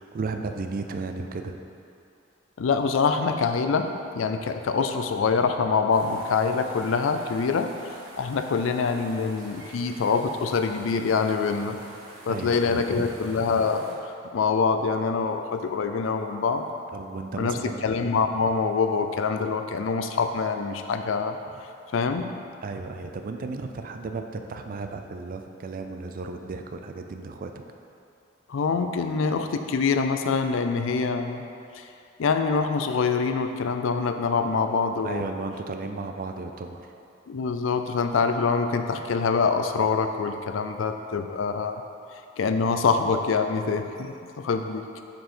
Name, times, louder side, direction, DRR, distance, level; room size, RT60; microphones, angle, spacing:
voice 1, 0.0-1.6 12.3-13.0 16.9-17.9 22.6-27.5 35.0-36.9, right 3 dB, 45° right, 6 dB, 0.4 m, -34 dB
voice 2, 2.6-7.7 8.2-11.8 12.3-14.0 14.3-16.7 17.4-21.4 21.9-22.3 28.5-31.4 31.7-31.9 32.2-35.2 37.3-41.8 42.4-44.9, left 5 dB, 75° left, 7 dB, 0.4 m, -25 dB
sound 1, 5.9-13.9, right 1 dB, 90° right, 1.1 m, -47 dB
6.3 x 4.7 x 4.3 m, 2.6 s
head